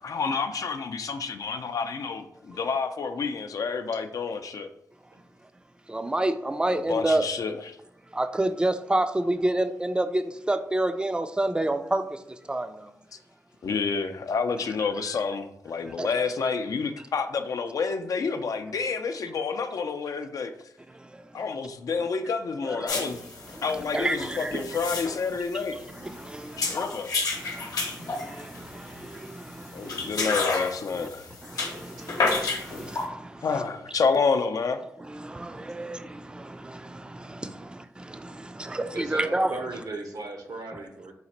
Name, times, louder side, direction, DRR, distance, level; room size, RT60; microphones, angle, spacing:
voice 1, 0.0-4.7 6.7-7.8 13.6-20.5 21.3-23.2 23.6-25.8 26.6-27.1 29.7-31.3 33.4-34.8, left 5 dB, 65° left, 0.4 m, -29 dB
voice 2, 5.9-7.3 8.1-12.9 16.0-16.1 20.9-21.4 22.6-23.1 23.5-24.6 25.9-26.8 27.3-30.3 30.9-31.1 31.4-33.5 35.1-39.5, right 1 dB, 15° right, 0.4 m, -30 dB
sound 1, 22.9-33.1, left 3 dB, 85° left, 0.8 m, -32 dB
voice 3, 38.9-41.1, right 3 dB, 75° right, 0.8 m, -37 dB
4.0 x 2.5 x 4.2 m
cardioid pair, 60°, 6 cm